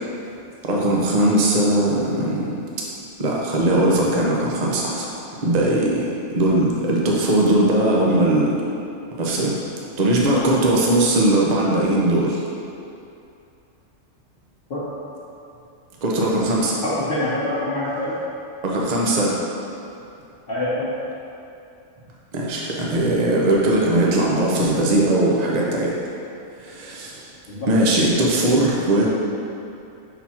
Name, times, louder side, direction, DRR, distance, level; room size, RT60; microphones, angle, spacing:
voice 1, 0.6-2.5 3.2-5.1 5.4-8.5 9.2-9.5 10.0-12.4 16.0-16.8 18.6-19.4 22.3-25.9 26.6-27.3 27.7-29.1, right 1 dB, 40° right, -3 dB, 0.8 m, -19 dB
voice 2, 16.8-18.1 20.5-20.9 27.5-27.8, left 1 dB, 50° left, -11 dB, 1.1 m, -25 dB
5.8 x 4.0 x 4.3 m, 2.6 s
omnidirectional pair, 1.3 m